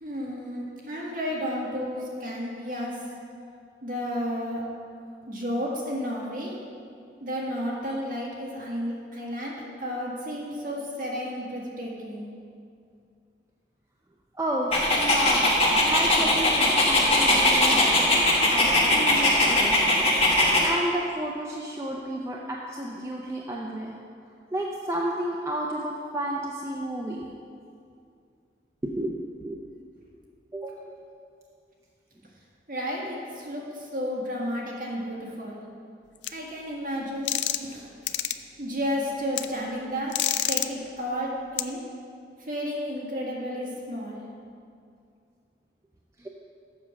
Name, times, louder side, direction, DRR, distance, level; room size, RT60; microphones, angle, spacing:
voice 1, 0.0-3.0 3.8-4.6 5.3-6.5 7.2-12.3 32.7-35.6 36.3-37.9 38.3-40.1 40.5-41.8 42.4-44.2, equal, 50° right, -4 dB, 1.7 m, -32 dB
voice 2, 14.3-15.5 15.8-19.7 20.6-24.0 24.5-27.3 28.8-29.6 30.5-31.0 46.2-46.3, right 1 dB, 15° right, -2 dB, 0.5 m, -31 dB
Dog, 14.7-20.7, left 1 dB, 35° left, 1.2 m, -21 dB
sound 1, 36.2-36.3 37.3-37.7 38.1-38.3 39.4-39.5 40.1-40.7 41.6-41.7, left 12 dB, 85° left, 0.4 m, -26 dB
7.3 x 6.0 x 6.3 m, 2.4 s
head